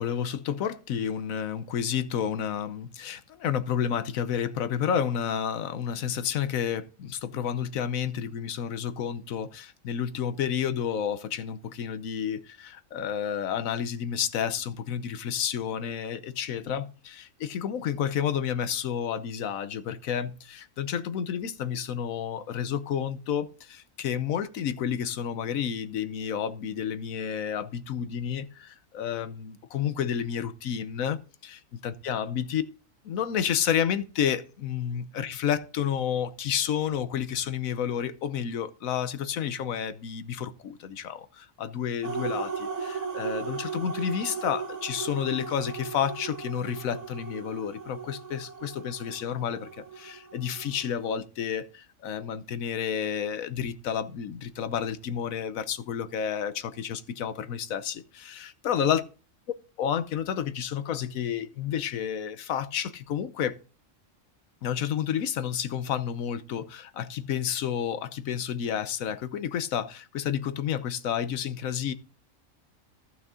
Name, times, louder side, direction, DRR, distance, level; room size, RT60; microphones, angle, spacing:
voice 1, 0.0-32.6 33.0-59.0 59.8-63.6 64.6-71.9, left 8 dB, 85° left, 1.2 m, -30 dB
sound 1, 42.0-51.1, right 5 dB, 60° right, 1.8 m, -37 dB
14.5 x 5.9 x 3.7 m
omnidirectional pair, 1.4 m